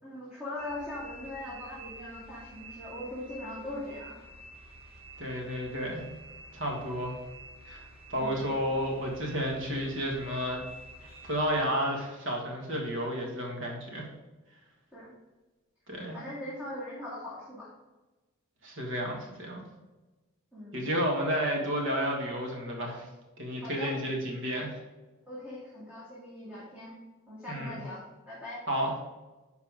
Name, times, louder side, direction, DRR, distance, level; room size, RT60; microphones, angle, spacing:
voice 1, 0.0-4.2 8.1-8.5 14.9-15.1 16.1-17.7 20.5-20.9 23.6-23.9 25.3-26.9 27.3-28.6, left 1 dB, 10° right, -9 dB, 2.1 m, -40 dB
sound 1, 0.6-11.7, right 2 dB, 25° right, 1.2 m, -49 dB
voice 2, 5.2-6.0 6.5-7.1 7.7-7.8 8.1-10.6 11.0-14.1 15.9-16.2 18.6-19.6 20.7-23.1 23.4-24.7 27.5-27.8 28.7-29.0, equal, 60° right, -1 dB, 1.9 m, -31 dB
10.0 x 4.7 x 3.6 m, 1.2 s
head